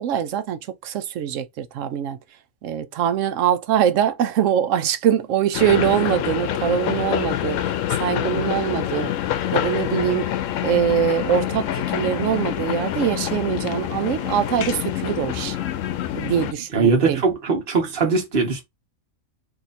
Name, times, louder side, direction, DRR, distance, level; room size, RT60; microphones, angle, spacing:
voice 1, 0.0-2.2 2.6-7.6 7.9-10.3 10.6-15.6 16.1-17.2, right 9 dB, 75° right, 0.9 m, -23 dB
sound 1, 5.5-16.5, left 11 dB, 75° left, 0.9 m, -26 dB
voice 2, 16.7-18.6, right 4 dB, 45° right, 1.4 m, -20 dB
3.0 x 2.8 x 4.0 m
omnidirectional pair, 1.4 m